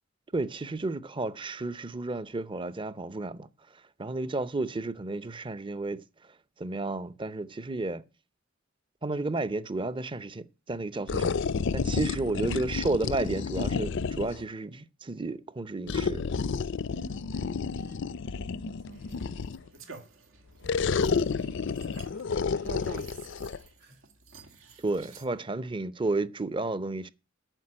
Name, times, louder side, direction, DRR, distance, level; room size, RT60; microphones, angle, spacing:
voice 1, 0.3-3.5 4.0-6.0 6.6-8.0 9.0-11.3 11.7-16.3 24.8-27.1, right 2 dB, 25° right, 0.7 m, -32 dB
sound 1, 11.1-14.4 15.9-19.7 20.6-23.6, left 5 dB, 60° left, 0.5 m, -30 dB
voice 2, 11.7-12.8 16.9-20.1 20.6-23.1 23.5-24.0 25.3-25.6, right 3 dB, 55° right, 3.3 m, -55 dB
sound 2, 18.9-25.2, right 4 dB, 80° right, 1.9 m, -49 dB
9.1 x 6.8 x 8.6 m
head